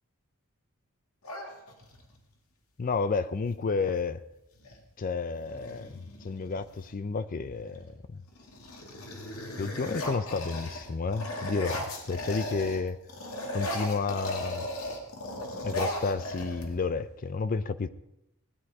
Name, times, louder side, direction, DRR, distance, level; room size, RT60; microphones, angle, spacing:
sound 1, 1.2-2.2 3.9-4.0 4.3-4.8 5.4-6.9 7.5-7.9 8.3-12.8 13.1-17.0, left 1 dB, 80° left, 2.2 m, -37 dB
voice 1, 2.8-4.2 5.0-8.2 9.6-13.0 13.5-14.7 15.6-17.9, left 4 dB, 40° left, 13 dB, 0.4 m, -31 dB
18.0 x 10.0 x 4.8 m, 0.86 s
head